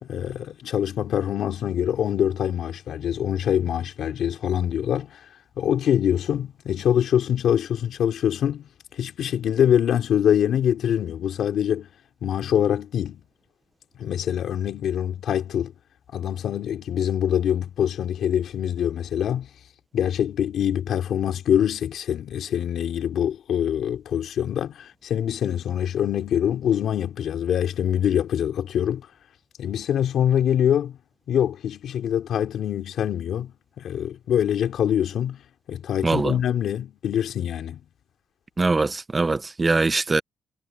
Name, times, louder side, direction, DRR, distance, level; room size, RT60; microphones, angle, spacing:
voice 1, 0.0-5.2 5.6-8.7 9.0-11.9 12.2-13.2 14.0-15.7 16.1-19.5 19.9-29.1 29.6-31.0 31.3-35.4 35.7-37.8, left 9 dB, 60° left, 3.0 m, -24 dB
voice 2, 36.0-36.3 38.6-40.2, right 3 dB, 20° right, 0.8 m, -22 dB
cardioid pair, 155°, 0 cm